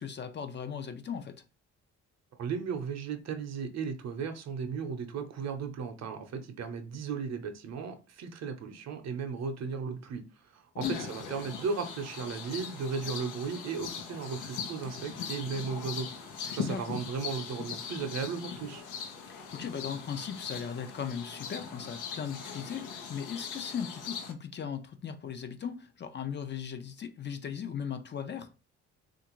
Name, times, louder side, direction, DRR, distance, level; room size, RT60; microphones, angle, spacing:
voice 1, 0.0-1.4 10.7-10.9 16.4-16.8 19.3-28.5, left 7 dB, 35° left, 0.5 m, -38 dB
voice 2, 2.4-16.2 16.5-18.8, right 5 dB, 60° right, 0.7 m, -36 dB
sound 1, 10.8-24.3, left 6 dB, 85° left, 0.7 m, -40 dB
3.3 x 2.5 x 3.0 m
cardioid pair, 90°, 30 cm